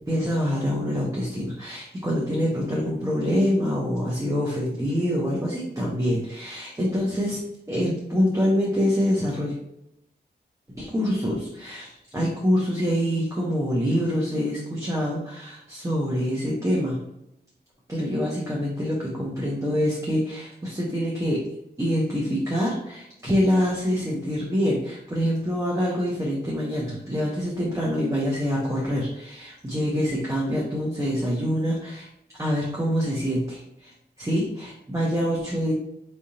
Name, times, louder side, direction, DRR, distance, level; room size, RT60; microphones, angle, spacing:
voice 1, 0.1-7.4 7.7-9.6 10.8-17.0 17.9-21.4 21.8-32.1 32.4-35.7, equal, 15° right, -5 dB, 0.9 m, -25 dB
4.8 x 3.4 x 2.8 m, 0.82 s
wide cardioid pair, 135°, 18 cm